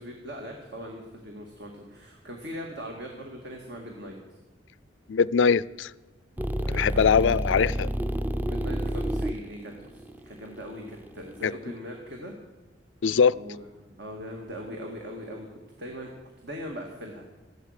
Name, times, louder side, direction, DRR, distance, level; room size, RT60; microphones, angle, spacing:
voice 1, 0.0-4.2 6.6-7.1 8.5-12.3 13.3-16.1 16.4-17.2, equal, 65° right, 2.1 m, -40 dB
voice 2, 5.1-5.9 6.7-7.9 11.4-11.5 13.0-13.3, left 6 dB, 90° left, 0.4 m, -22 dB
sound 1, 6.4-11.5, equal, 10° right, 0.5 m, -30 dB
15.0 x 11.5 x 6.6 m
head